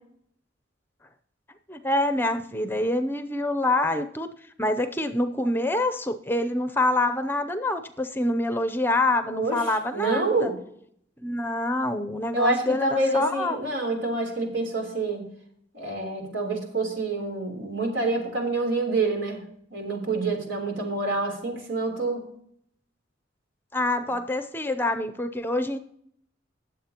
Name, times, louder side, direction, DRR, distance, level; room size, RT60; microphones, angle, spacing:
voice 1, 1.7-4.3 4.6-10.5 11.2-13.6 23.7-25.8, left 1 dB, 10° left, 10 dB, 0.6 m, -26 dB
voice 2, 9.9-10.6 12.3-15.3 15.7-19.4 19.7-22.3, right 3 dB, 85° right, 2 dB, 3.4 m, -27 dB
20.0 x 7.6 x 2.9 m, 0.67 s
head